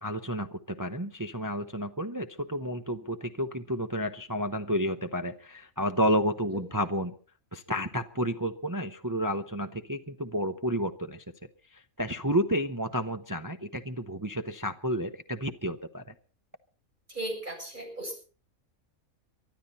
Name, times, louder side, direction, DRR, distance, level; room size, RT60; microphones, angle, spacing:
voice 1, 0.0-7.1 7.5-11.2 11.7-16.1, equal, 20° right, 7 dB, 0.7 m, -31 dB
voice 2, 17.1-18.2, right 1 dB, 35° right, 2 dB, 7.4 m, -36 dB
24.0 x 12.5 x 4.2 m, 0.39 s
omnidirectional pair, 1.5 m